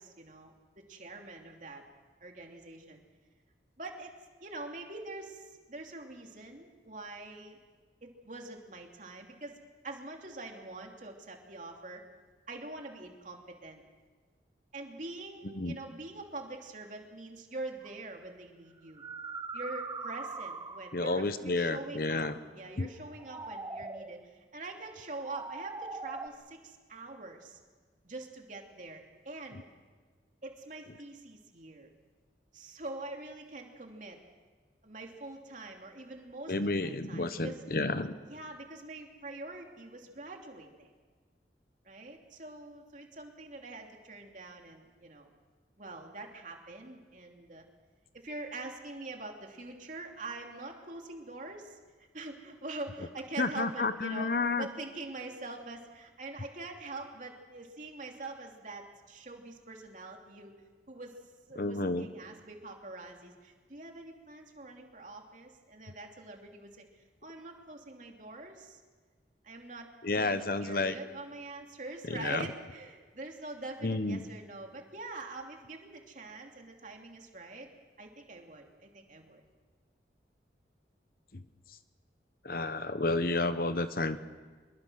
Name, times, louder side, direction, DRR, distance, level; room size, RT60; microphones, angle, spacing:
voice 1, 0.0-1.8 2.2-3.0 3.8-4.1 4.4-7.6 8.0-9.6 9.8-12.0 12.5-13.8 14.7-19.0 19.5-22.3 22.5-27.6 28.0-29.6 30.4-31.9 32.5-34.2 34.8-37.6 38.0-40.9 41.8-45.3 45.8-47.7 48.1-54.3 54.6-60.6 60.9-68.8 69.4-69.9 70.2-77.7 78.0-79.4, right 2 dB, 45° right, 2 dB, 2.9 m, -44 dB
voice 2, 15.4-15.8 20.9-22.4 22.8-22.9 36.5-38.1 53.4-54.7 61.5-62.1 70.0-70.9 72.1-72.5 73.8-74.3 81.3-81.4 82.4-84.2, left 3 dB, 55° left, 11 dB, 1.0 m, -31 dB
sound 1, 17.8-18.0 18.8-21.1 23.0-24.2 25.1-26.3, right 3 dB, 20° right, 0.9 m, -41 dB
25.0 x 22.5 x 6.4 m, 1.4 s
head